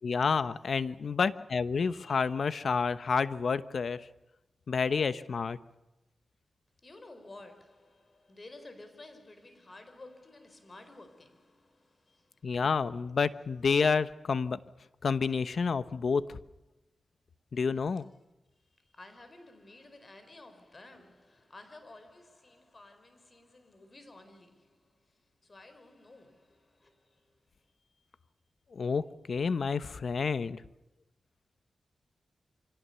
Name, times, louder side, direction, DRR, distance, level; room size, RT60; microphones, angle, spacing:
voice 1, 0.0-4.1 4.7-5.6 12.4-14.6 15.0-16.4 17.5-18.0 28.7-30.6, left 5 dB, 70° left, 1.0 m, -29 dB
voice 2, 6.8-12.5 18.8-28.1, left 2 dB, 40° left, 4.8 m, -53 dB
25.5 x 17.5 x 6.9 m
cardioid pair, 60°, 0 cm